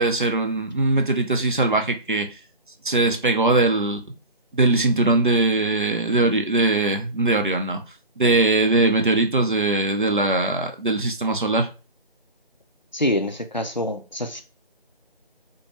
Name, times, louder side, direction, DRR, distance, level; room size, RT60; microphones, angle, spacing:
voice 1, 0.0-2.3 2.8-4.0 4.5-7.8 8.2-11.7, right 2 dB, 55° right, 0.7 m, -21 dB
voice 2, 12.9-14.4, left 1 dB, 50° left, 0.5 m, -25 dB
4.3 x 2.2 x 3.1 m
figure-of-eight pair, 180°, 30 cm